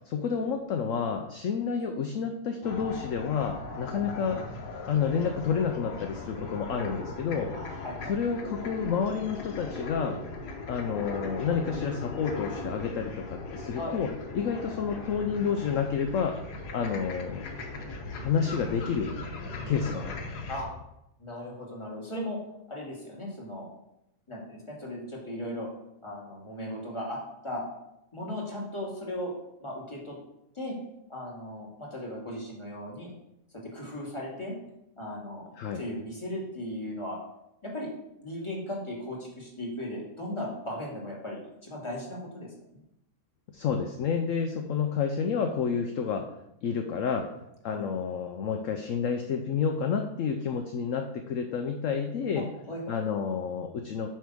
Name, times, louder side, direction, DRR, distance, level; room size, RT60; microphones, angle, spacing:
voice 1, 0.0-4.4 4.9-7.8 8.1-10.2 10.7-14.1 14.3-16.4 16.7-17.4 18.2-19.3 19.6-20.1 35.6-35.8 43.5-46.3 46.6-47.3 47.6-52.4 52.9-54.1, left 6 dB, 65° left, 5 dB, 0.9 m, -29 dB
sound 1, 2.6-20.6, left 3 dB, 85° left, 1.6 m, -38 dB
voice 2, 7.5-8.1 13.7-13.9 20.5-20.7 21.2-22.4 22.7-23.7 24.3-25.7 26.0-27.2 27.4-27.6 28.1-29.3 29.6-30.2 30.5-30.8 31.1-33.1 33.6-34.6 35.0-35.5 35.7-37.2 37.6-37.9 38.2-42.8 47.7-47.9 52.3-52.9, left 1 dB, 20° left, -4 dB, 2.2 m, -37 dB
8.9 x 3.5 x 6.1 m, 0.83 s
omnidirectional pair, 1.7 m